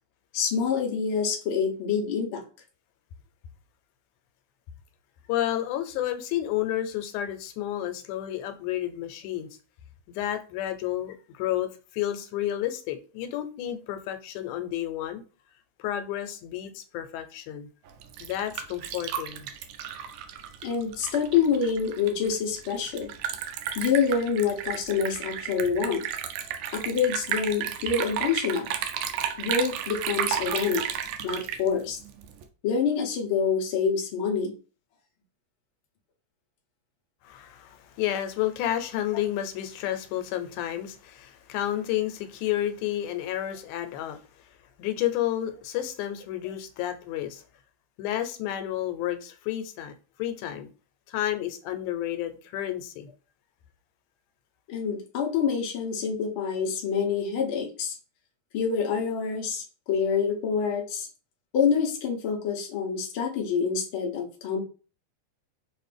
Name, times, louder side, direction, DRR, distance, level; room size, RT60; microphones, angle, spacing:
voice 1, 0.3-2.4 20.6-23.1 23.7-26.0 26.7-28.7 29.4-30.8 31.2-32.0 32.6-34.5 54.7-58.0 58.5-61.1 61.5-64.6, left 6 dB, 65° left, 1.3 m, -26 dB
voice 2, 5.3-9.5 10.1-15.2 15.8-17.7 18.2-19.5 37.2-44.2 44.8-47.4 48.0-49.9 50.2-50.7 51.1-53.1, left 12 dB, 90° left, 2.1 m, -31 dB
Liquid, 17.9-32.4, right 9 dB, 85° right, 2.1 m, -33 dB
5.9 x 2.6 x 3.3 m
omnidirectional pair, 3.4 m